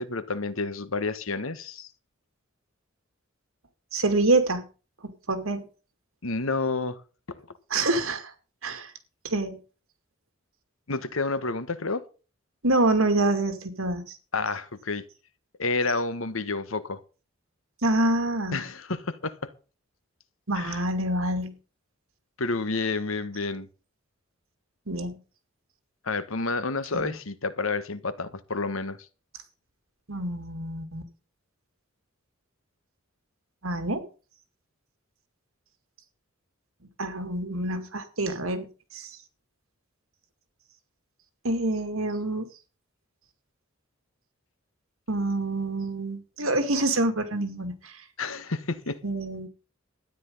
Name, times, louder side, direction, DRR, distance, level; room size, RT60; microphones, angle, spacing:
voice 1, 0.0-1.9 6.2-7.0 7.3-7.4 10.9-12.1 14.3-15.0 15.6-17.0 18.5-19.5 20.5-20.8 22.4-23.7 26.0-29.0 48.2-49.0, left 3 dB, 80° left, 1.4 m, -30 dB
voice 2, 3.9-4.7 5.0-5.6 7.7-8.3 8.6-8.9 9.2-9.6 12.6-14.2 17.8-18.6 20.5-21.5 24.9-25.2 26.9-27.1 30.1-31.1 33.6-34.0 37.0-39.2 41.4-42.5 45.1-48.0 49.0-49.5, right 2 dB, 85° right, 2.4 m, -26 dB
13.0 x 10.0 x 5.5 m
head